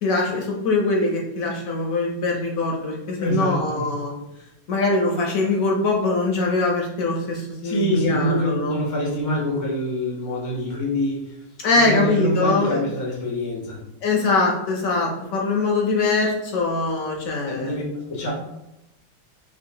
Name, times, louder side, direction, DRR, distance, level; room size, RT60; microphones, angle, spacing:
voice 1, 0.0-4.1 4.7-8.8 11.6-12.8 14.0-17.8, left 3 dB, 65° left, 0 dB, 0.9 m, -22 dB
voice 2, 3.2-3.9 7.6-11.3 11.7-13.8 17.5-18.3, equal, 25° left, -3 dB, 0.4 m, -25 dB
4.4 x 2.3 x 2.8 m, 0.90 s
omnidirectional pair, 1.8 m